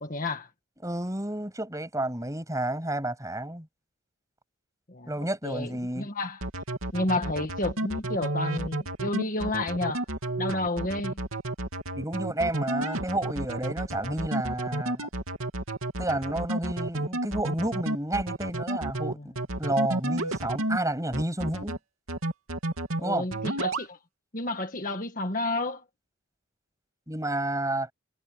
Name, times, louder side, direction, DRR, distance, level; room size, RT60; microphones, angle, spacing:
voice 1, 0.0-0.5 4.9-5.1 5.4-6.5 6.9-10.1 10.4-11.2 19.1-19.3 23.0-24.0 24.3-25.8, left 2 dB, 40° left, 1.7 m, -31 dB
voice 2, 0.8-3.7 5.1-6.1 12.0-15.1 16.0-19.3 19.6-21.8 23.0-23.3 27.1-27.9, right 1 dB, 15° right, 7.5 m, -30 dB
sound 1, 6.4-20.8 21.1-21.8 22.1-23.0 23.3-23.9, right 2 dB, 85° right, 3.2 m, -31 dB
head